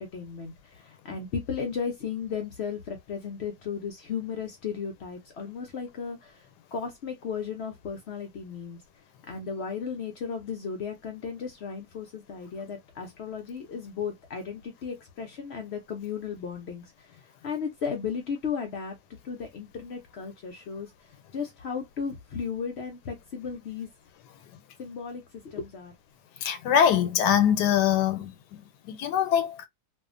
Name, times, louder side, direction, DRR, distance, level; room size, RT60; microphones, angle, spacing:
voice 1, 0.0-8.8 9.3-19.0 19.2-23.9 24.8-25.9, left 6 dB, 70° left, 0.6 m, -35 dB
voice 2, 26.4-29.7, left 9 dB, 90° left, 1.2 m, -24 dB
2.7 x 2.4 x 2.4 m
omnidirectional pair, 1.7 m